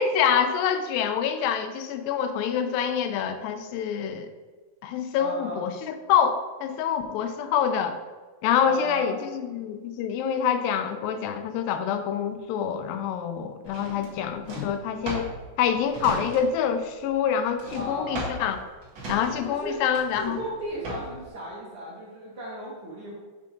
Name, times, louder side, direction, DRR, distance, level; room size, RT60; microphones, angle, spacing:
voice 1, 0.0-4.3 4.8-8.0 8.4-15.3 15.6-18.6 19.1-20.4, left 8 dB, 90° left, 8 dB, 2.3 m, -26 dB
voice 2, 5.2-5.6 8.6-9.1 17.7-18.3 19.4-19.8 20.2-23.2, equal, 85° right, -6 dB, 1.2 m, -36 dB
Drawer open or close, 13.7-16.8 17.0-21.3, right 1 dB, 60° right, 1.2 m, -37 dB
6.9 x 5.5 x 2.6 m, 1.3 s
omnidirectional pair, 4.0 m